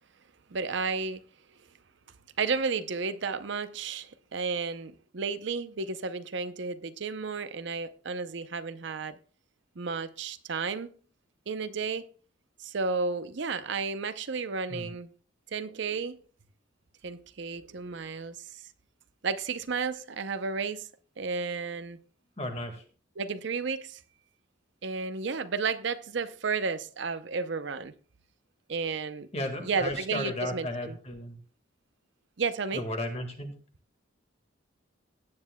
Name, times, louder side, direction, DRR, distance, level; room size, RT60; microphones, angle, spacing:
voice 1, 0.5-1.2 2.4-9.2 9.8-10.9 11.5-12.1 12.6-15.1 15.5-16.2 17.0-18.6 19.2-20.9 21.2-22.0 23.2-24.0 24.8-27.9 28.7-29.3 29.6-31.0 32.4-32.8, right 5 dB, 60° right, 0.6 m, -32 dB
voice 2, 22.4-22.8 29.3-31.4 32.7-33.5, left 1 dB, 30° left, 1.7 m, -34 dB
17.0 x 9.6 x 2.2 m
head